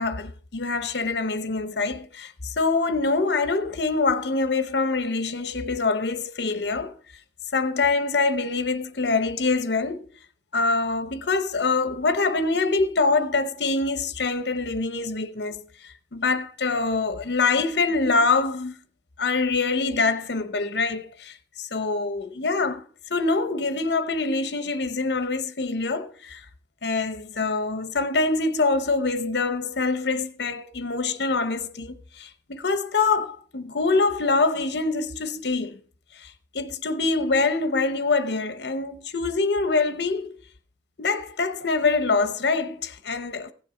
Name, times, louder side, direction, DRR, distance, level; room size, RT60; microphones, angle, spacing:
voice 1, 0.0-7.0 7.5-10.1 10.5-15.6 16.1-18.8 19.2-22.8 23.1-26.4 26.8-35.8 36.2-40.4 41.0-43.5, left 3 dB, 70° left, 0.8 m, -25 dB
16.0 x 7.4 x 3.8 m
head